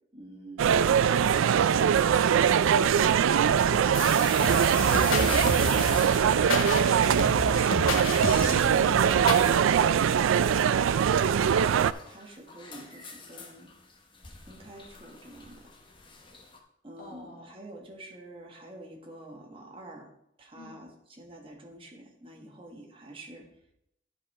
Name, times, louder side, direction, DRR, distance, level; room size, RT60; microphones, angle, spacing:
voice 1, 0.1-1.6 12.1-13.7 14.4-15.7 16.8-20.1 20.4-23.5, right 1 dB, 25° right, 1 dB, 1.4 m, -47 dB
sound 1, 0.6-11.9, right 8 dB, 85° right, 0.3 m, -22 dB
sound 2, 3.9-7.7 8.0-8.7 9.0-9.1 9.8-10.2 11.2-16.6, left 5 dB, 25° left, 1.0 m, -41 dB
sound 3, 4.4-9.5, left 3 dB, 85° left, 1.0 m, -32 dB
voice 2, 7.1-8.8 17.0-17.6 20.6-20.7, equal, 45° left, -2 dB, 2.2 m, -49 dB
10.0 x 5.5 x 4.2 m, 0.79 s
head